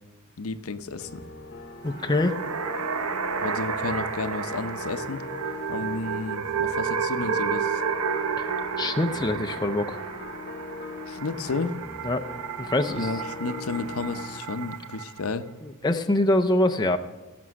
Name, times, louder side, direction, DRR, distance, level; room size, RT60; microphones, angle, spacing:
voice 1, 0.4-1.2 3.4-5.2 5.7-7.8 11.1-11.7 12.9-15.5, left 3 dB, 70° left, 10 dB, 0.7 m, -32 dB
sound 1, 1.0-14.4, left 4 dB, 45° left, 0.9 m, -41 dB
voice 2, 1.8-2.4 8.8-10.0 12.0-12.3 12.6-13.1 15.6-17.0, left 1 dB, 20° left, 6 dB, 0.5 m, -24 dB
sound 2, 1.9-15.2, right 6 dB, 80° right, 0.8 m, -31 dB
17.0 x 6.1 x 6.3 m, 1.1 s
head